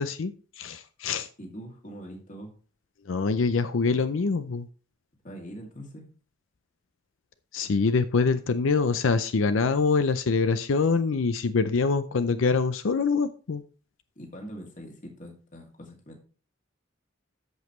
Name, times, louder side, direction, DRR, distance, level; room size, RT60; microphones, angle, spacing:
voice 1, 0.0-1.3 3.1-4.7 7.5-13.6, left 4 dB, 75° left, 12 dB, 0.5 m, -25 dB
voice 2, 1.4-2.5 5.2-6.1 14.2-16.2, equal, 40° left, 1 dB, 2.3 m, -42 dB
14.0 x 5.3 x 3.0 m, 0.38 s
head